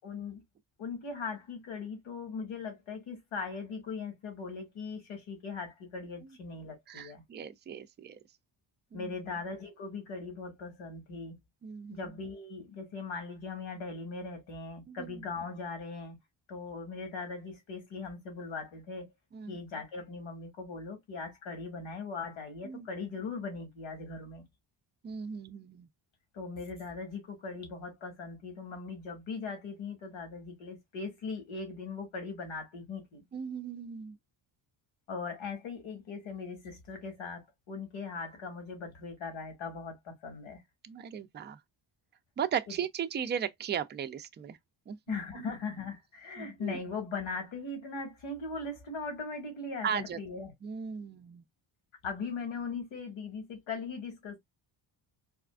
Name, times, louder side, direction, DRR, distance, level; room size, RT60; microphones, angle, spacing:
voice 1, 0.0-0.4 0.8-7.2 8.9-11.4 11.9-16.2 16.5-19.1 19.5-24.5 26.3-33.2 35.1-40.6 42.7-42.8 45.1-50.5 52.0-54.4, left 4 dB, 80° left, 1.9 m, -39 dB
voice 2, 6.9-8.2 8.9-9.1 11.6-12.1 14.9-15.2 19.3-19.6 22.6-22.9 25.0-25.9 33.3-34.2 40.8-41.6 42.4-44.6 44.9-45.0 45.3-45.5 46.4-46.8 49.8-50.2 50.6-51.4, right 8 dB, 25° right, 0.3 m, -37 dB
4.2 x 2.4 x 2.3 m
cardioid pair, 105°, 47 cm